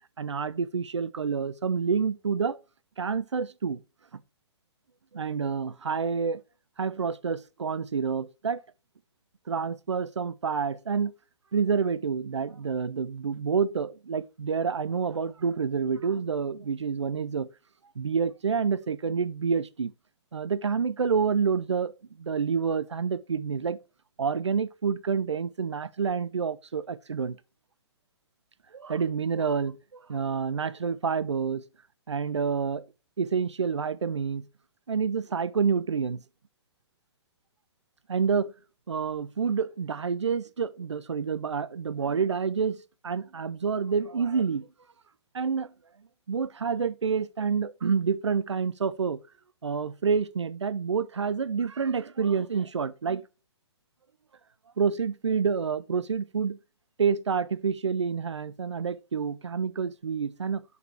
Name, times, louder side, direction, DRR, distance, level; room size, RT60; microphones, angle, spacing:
voice 1, 0.2-2.6 3.0-3.8 5.1-6.4 6.8-8.6 9.5-11.1 11.5-17.5 18.0-19.9 20.3-21.9 22.2-23.8 24.2-27.4 28.7-31.6 32.1-32.9 33.2-34.4 34.9-36.2 38.1-38.5 38.9-44.7 45.3-45.7 46.3-49.2 49.6-53.2 54.8-56.6 57.0-60.6, right 6 dB, 90° right, 0.4 m, -28 dB
6.6 x 4.1 x 4.4 m
figure-of-eight pair, 130°, 14 cm